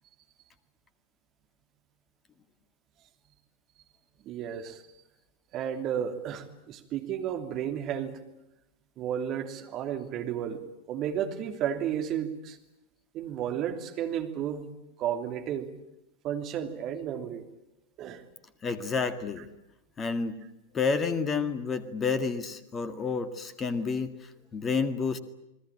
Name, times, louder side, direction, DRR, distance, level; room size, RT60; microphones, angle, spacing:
voice 1, 4.2-4.8 5.5-8.2 9.0-10.6 10.9-12.6 13.1-14.7 15.0-15.7 16.2-17.5 18.0-18.2, right 9 dB, 35° right, 5 dB, 3.1 m, -32 dB
voice 2, 18.6-19.5 20.0-20.4 20.7-24.1 24.5-25.2, left 5 dB, 20° left, 12 dB, 1.9 m, -29 dB
30.0 x 20.0 x 8.8 m, 0.90 s
figure-of-eight pair, 90°, 0 cm